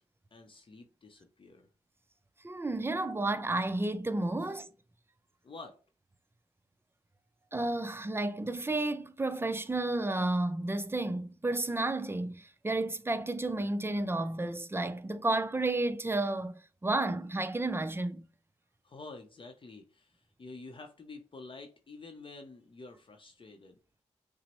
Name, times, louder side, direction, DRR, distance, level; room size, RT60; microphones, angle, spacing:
voice 1, 0.3-1.7 4.4-4.5 5.4-5.8 18.8-23.8, left 3 dB, 40° left, 0.6 m, -49 dB
voice 2, 2.4-4.7 7.5-18.2, right 2 dB, 20° right, 0.4 m, -32 dB
5.8 x 2.0 x 3.0 m
supercardioid pair, 40°, 13 cm